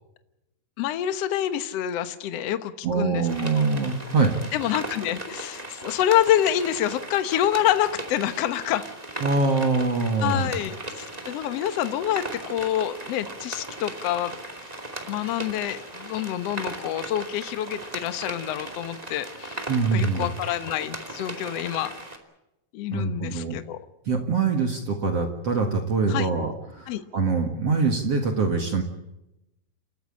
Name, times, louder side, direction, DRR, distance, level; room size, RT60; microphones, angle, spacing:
voice 1, 0.8-3.3 4.5-8.8 10.2-14.3 14.6-14.7 15.1-19.6 19.9-21.9 22.7-23.8 26.1-26.3 26.9-27.0, left 11 dB, 80° left, 11 dB, 1.4 m, -27 dB
voice 2, 2.8-4.3 9.2-10.5 19.7-20.3 22.9-23.6 24.1-28.8, right 4 dB, 45° right, 4 dB, 2.4 m, -24 dB
sound 1, 3.2-22.2, right 1 dB, 15° right, 1.9 m, -38 dB
29.5 x 14.0 x 8.7 m, 0.90 s
omnidirectional pair, 4.5 m